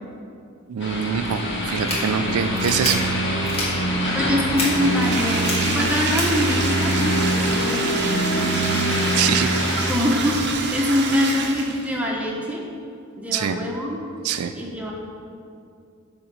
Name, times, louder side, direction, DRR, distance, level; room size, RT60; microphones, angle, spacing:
voice 1, 0.7-3.0 9.2-9.5 13.3-13.6 14.2-14.6, right 7 dB, 80° right, 9 dB, 0.4 m, -24 dB
sound 1, 0.8-9.9, equal, 55° left, 1.2 m, -24 dB
sound 2, 1.7-2.0 2.5-2.9 3.4-3.7 4.6-4.7 5.3-5.5 6.2-6.3, left 2 dB, 30° left, 1.6 m, -27 dB
voice 2, 4.1-8.8 9.9-12.7 13.2-14.0 14.5-14.9, left 1 dB, 5° right, -2 dB, 0.9 m, -24 dB
Bathtub (filling or washing), 4.7-11.9, right 4 dB, 50° right, 0.7 m, -28 dB
6.9 x 5.2 x 5.3 m, 2.5 s
head